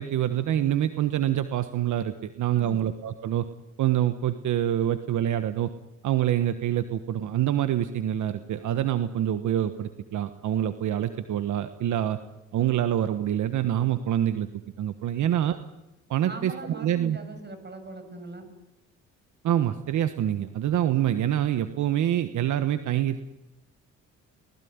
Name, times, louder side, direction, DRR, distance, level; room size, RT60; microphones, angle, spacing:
voice 1, 0.0-3.5 3.8-5.7 6.0-12.2 12.5-14.5 14.8-15.6 16.1-17.2 19.4-23.2, right 11 dB, 75° right, 10 dB, 1.3 m, -26 dB
voice 2, 2.5-2.9 15.2-15.5 16.2-18.4, right 2 dB, 35° right, 9 dB, 6.7 m, -41 dB
29.0 x 19.5 x 9.6 m, 0.99 s
cardioid pair, 90°, 30 cm